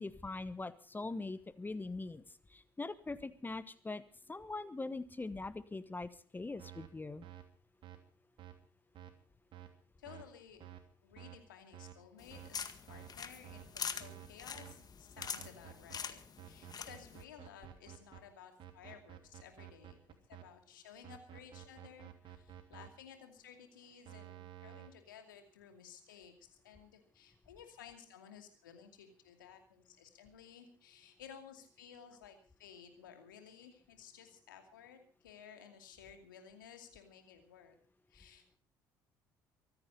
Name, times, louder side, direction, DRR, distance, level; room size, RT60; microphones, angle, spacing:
voice 1, 0.0-2.2 2.5-7.3, left 3 dB, 20° left, 15 dB, 1.1 m, -42 dB
sound 1, 6.6-6.9 7.2-7.4 7.8-8.0 8.4-8.5 8.9-9.1 9.5-9.7 10.0-10.2 10.6-10.8 11.2-11.4 11.7-11.9 12.3-12.5 12.9-13.1 13.4-13.6 14.0-14.3 14.5-14.7 15.2-16.0 16.4-18.2 18.6-20.4 21.0-22.9 24.0-24.9, right 13 dB, 55° right, 3.0 m, -51 dB
voice 2, 10.0-10.7 11.0-20.0 20.3-37.8 38.1-38.6, left 8 dB, 85° left, 6 dB, 2.5 m, -56 dB
sound 2, 12.2-17.2, left 6 dB, 40° left, 1.8 m, -45 dB
24.0 x 9.8 x 5.2 m, 0.42 s
hypercardioid pair, 55°, 11 cm